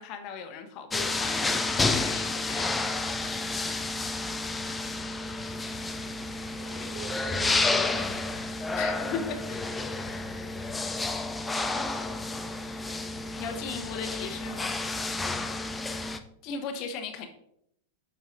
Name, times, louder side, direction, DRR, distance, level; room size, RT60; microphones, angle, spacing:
voice 1, 0.0-2.9 8.7-9.6 13.4-14.7 16.4-17.3, left 6 dB, 40° left, 7 dB, 0.9 m, -37 dB
sound 1, 0.9-16.2, left 3 dB, 10° left, 0.4 m, -30 dB
voice 2, 6.3-8.4 9.7-10.0, right 2 dB, 45° right, -1 dB, 1.6 m, -46 dB
7.9 x 5.5 x 2.5 m, 0.75 s
figure-of-eight pair, 90°, 0 cm